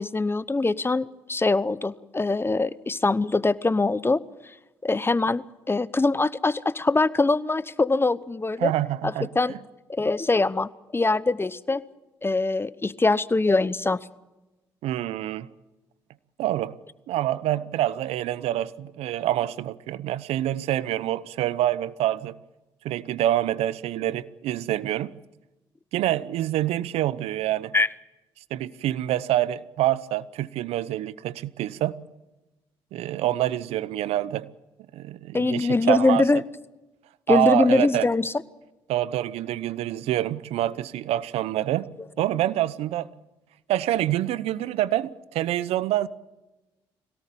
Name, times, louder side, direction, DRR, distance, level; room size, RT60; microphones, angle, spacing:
voice 1, 0.0-4.2 4.8-8.7 9.0-9.5 9.9-11.8 12.2-14.1 27.7-27.9 35.3-36.4 37.3-38.3, left 3 dB, 20° left, 0.9 m, -23 dB
voice 2, 8.6-9.6 14.8-15.5 16.4-16.8 17.1-22.4 22.8-25.1 25.9-27.7 28.5-32.0 32.9-34.5 34.9-36.2 37.3-38.1 38.9-41.9 42.2-43.1 43.7-46.1, right 13 dB, 75° right, 0.8 m, -26 dB
22.0 x 17.5 x 8.6 m
supercardioid pair, 55°, 10 cm